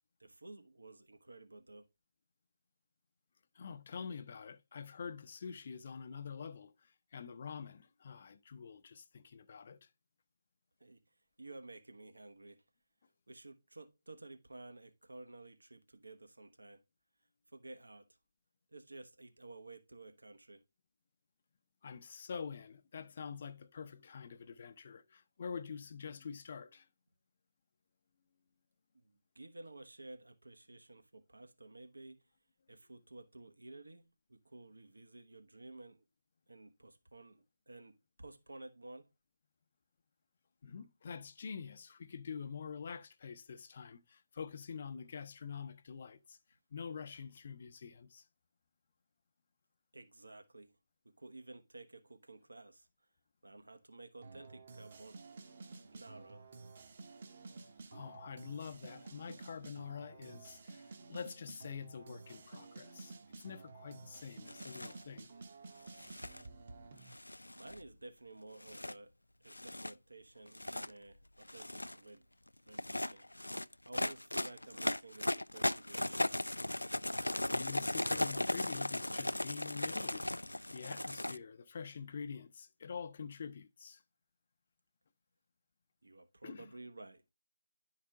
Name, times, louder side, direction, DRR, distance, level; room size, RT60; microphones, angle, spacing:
voice 1, 0.2-1.9 10.8-11.0 11.4-12.6 13.3-16.8 17.5-18.1 18.7-20.6 28.9-32.2 32.7-36.0 36.5-39.1 49.9-50.7 51.2-52.9 53.4-55.2 55.9-56.4 67.5-69.1 69.4-72.3 72.6-73.3 73.8-76.3 86.0-87.2, right 2 dB, 80° right, 1.2 m, -53 dB
voice 2, 3.5-9.9 21.8-26.9 40.6-46.4 46.7-48.2 57.9-65.3 77.1-77.2 77.5-80.3 80.7-84.0 86.4-86.7, left 6 dB, 40° left, 0.7 m, -46 dB
sound 1, 54.2-67.1, right 3 dB, 45° right, 1.1 m, -52 dB
sound 2, 64.5-65.0 65.9-66.4 67.1-67.9 68.6-68.9 69.5-69.9 70.5-70.9 71.4-72.0 72.7-81.4, left 1 dB, 90° left, 0.3 m, -37 dB
10.0 x 4.8 x 3.6 m
figure-of-eight pair, 155°, 0 cm